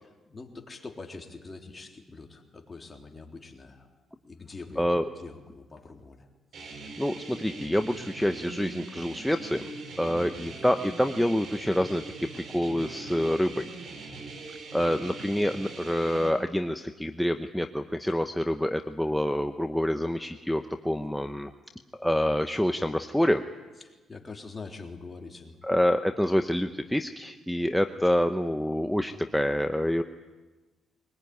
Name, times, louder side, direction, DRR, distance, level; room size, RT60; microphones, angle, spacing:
voice 1, 0.0-3.9 4.2-6.3 10.1-10.5 14.5-15.0 23.8-25.9, left 3 dB, 25° left, 2 dB, 3.4 m, -45 dB
sound 1, 6.5-16.3, right 3 dB, 60° right, 5.0 m, -42 dB
voice 2, 7.0-9.7 10.0-12.3 12.5-13.7 14.7-21.5 21.9-23.4 25.6-30.0, equal, ahead, 7 dB, 0.9 m, -27 dB
22.5 x 20.0 x 9.5 m, 1.2 s
cardioid pair, 90°, 0 cm